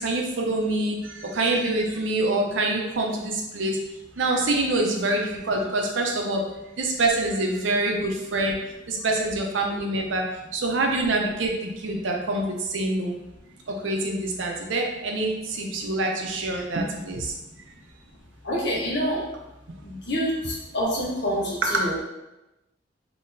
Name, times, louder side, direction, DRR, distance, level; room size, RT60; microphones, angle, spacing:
voice 1, 0.0-3.8 4.2-6.4 6.8-8.5 8.9-10.2 10.5-13.1 13.7-17.3 21.6-21.8, right 2 dB, 80° right, 1 dB, 0.6 m, -25 dB
voice 2, 18.4-19.2 19.8-22.0, equal, 65° left, -5 dB, 1.1 m, -27 dB
3.8 x 2.9 x 2.6 m, 0.98 s
head